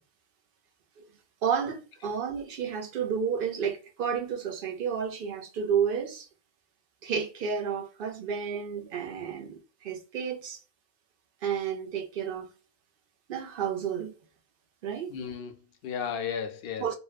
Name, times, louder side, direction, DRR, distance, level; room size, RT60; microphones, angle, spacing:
voice 1, 1.4-6.3 7.0-10.6 11.4-12.5 13.3-14.1 14.8-15.1 16.8-16.9, right 7 dB, 60° right, 0.7 m, -31 dB
voice 2, 15.1-16.9, left 7 dB, 65° left, 0.7 m, -34 dB
2.8 x 2.1 x 2.3 m
omnidirectional pair, 1.1 m